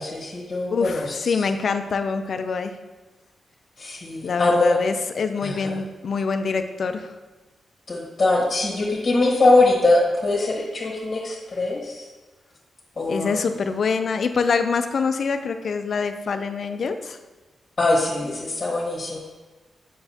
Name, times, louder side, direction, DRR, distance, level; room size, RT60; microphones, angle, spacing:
voice 1, 0.0-1.0 3.8-4.7 5.4-5.5 7.9-12.0 13.0-13.3 17.8-19.2, left 2 dB, 40° left, -5 dB, 1.3 m, -22 dB
voice 2, 0.7-2.7 4.2-7.1 13.1-17.2, left 5 dB, 60° left, 8 dB, 0.5 m, -25 dB
6.9 x 5.4 x 2.8 m, 1.2 s
cardioid pair, 95°, 0 cm